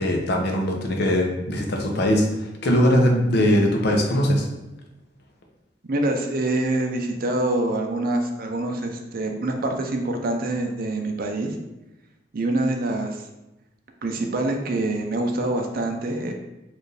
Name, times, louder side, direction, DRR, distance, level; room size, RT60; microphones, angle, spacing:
voice 1, 0.0-4.5, equal, 60° left, 1 dB, 0.7 m, -21 dB
voice 2, 5.9-11.5 12.3-13.2 14.0-16.3, right 2 dB, 50° right, 3 dB, 0.5 m, -25 dB
4.4 x 2.6 x 3.2 m, 0.96 s
head